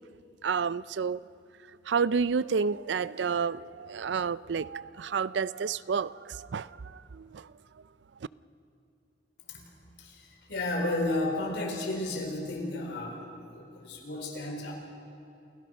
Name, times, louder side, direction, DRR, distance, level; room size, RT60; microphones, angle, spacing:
voice 1, 0.4-1.2 1.9-7.5, right 5 dB, 80° right, 19 dB, 0.5 m, -30 dB
voice 2, 9.4-13.2 13.5-14.7, left 2 dB, 70° left, 1 dB, 4.5 m, -33 dB
28.5 x 16.5 x 6.6 m, 2.8 s
head